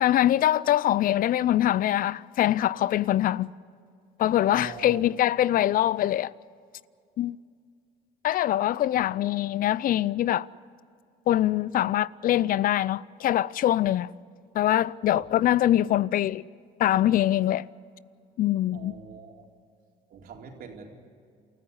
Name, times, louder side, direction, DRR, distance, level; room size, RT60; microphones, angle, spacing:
voice 1, 0.0-3.5 4.2-6.3 7.2-7.4 8.2-10.5 11.3-14.1 14.5-16.4 16.8-17.7 18.4-18.9, left 13 dB, 55° left, 0.5 m, -23 dB
voice 2, 4.5-5.0 8.9-9.1 15.1-15.3 18.7-19.4 20.1-20.9, right 6 dB, 60° right, 4.0 m, -42 dB
28.0 x 14.5 x 9.6 m
cardioid pair, 110°, 17 cm